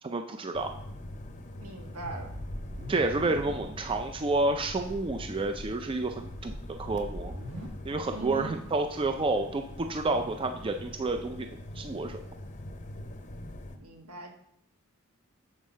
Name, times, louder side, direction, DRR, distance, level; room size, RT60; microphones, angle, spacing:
voice 1, 0.0-0.7 2.9-6.5 6.8-7.3 7.9-12.2, right 2 dB, 25° right, 6 dB, 0.4 m, -30 dB
sound 1, 0.5-13.8, left 1 dB, 35° left, 0.6 m, -44 dB
voice 2, 1.6-2.3 8.1-8.7 13.8-14.3, right 3 dB, 75° right, 3 dB, 1.3 m, -41 dB
sound 2, 2.0-3.9 4.2-4.3 4.6-5.1 5.5-7.7, equal, 55° right, 1.5 m, -40 dB
7.4 x 4.5 x 6.2 m, 0.71 s
head